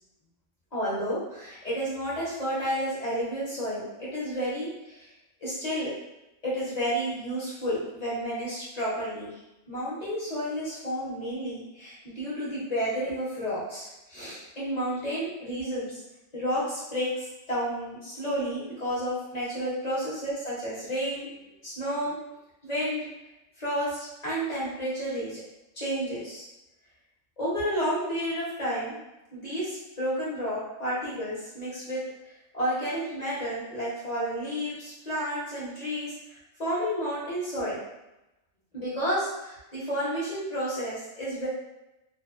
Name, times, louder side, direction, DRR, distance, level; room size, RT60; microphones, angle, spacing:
voice 1, 0.7-5.1 5.4-5.9 6.4-9.4 9.7-16.0 16.3-22.2 22.6-23.1 23.6-25.4 25.7-26.5 27.4-29.0 29.3-32.0 32.5-37.8 38.7-41.5, equal, 35° left, -9 dB, 0.9 m, -31 dB
2.6 x 2.3 x 2.4 m, 0.95 s
omnidirectional pair, 1.4 m